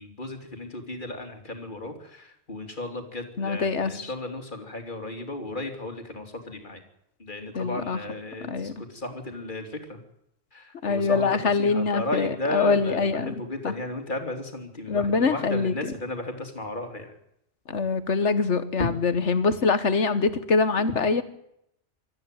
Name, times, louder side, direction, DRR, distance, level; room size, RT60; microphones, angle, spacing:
voice 1, 0.0-6.8 7.2-8.5 8.8-10.0 10.5-17.1, left 1 dB, 40° left, 5 dB, 3.1 m, -34 dB
voice 2, 3.4-4.1 7.5-8.0 8.4-8.8 10.8-13.7 14.9-15.9 17.7-21.2, left 4 dB, 65° left, 13 dB, 1.6 m, -24 dB
25.0 x 14.0 x 9.1 m, 0.79 s
omnidirectional pair, 1.3 m